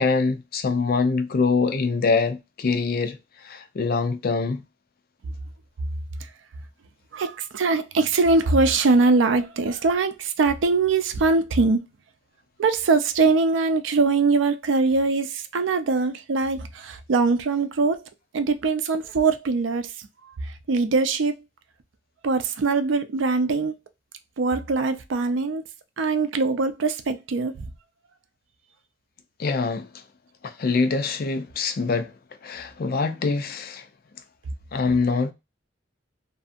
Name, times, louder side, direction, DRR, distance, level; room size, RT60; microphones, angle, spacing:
voice 1, 0.0-4.6 29.4-30.0 30.4-32.1 32.4-33.9 34.7-35.3, left 4 dB, 55° left, 0.4 m, -24 dB
voice 2, 7.1-11.8 12.6-18.0 18.3-19.9 20.4-21.3 22.2-23.7 24.4-25.6 26.0-27.7, right 3 dB, 90° right, 0.4 m, -22 dB
2.6 x 2.4 x 2.4 m
head